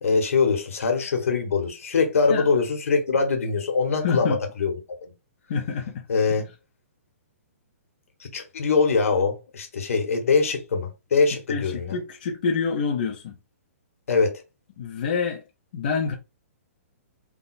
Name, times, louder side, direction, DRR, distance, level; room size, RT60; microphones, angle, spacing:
voice 1, 0.0-4.7 5.0-5.1 6.1-6.4 8.3-12.0 14.1-14.3, left 4 dB, 75° left, 1.2 m, -23 dB
voice 2, 3.9-4.4 5.5-6.0 11.5-13.3 14.8-15.4 15.7-16.1, left 5 dB, 40° left, 0.6 m, -27 dB
3.4 x 2.0 x 4.1 m
hypercardioid pair, 175°, 8 cm